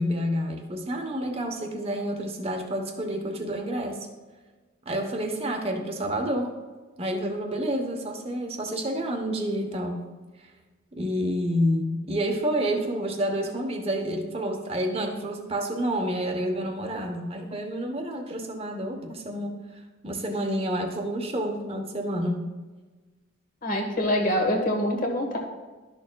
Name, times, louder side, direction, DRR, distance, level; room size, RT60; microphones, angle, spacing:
voice 1, 0.0-4.0 4.9-6.5 7.0-10.0 11.0-19.6 20.0-22.5, equal, 30° right, 3 dB, 1.0 m, -29 dB
voice 2, 23.6-25.4, left 1 dB, 40° left, 2 dB, 1.3 m, -25 dB
12.5 x 6.5 x 2.3 m, 1.3 s
head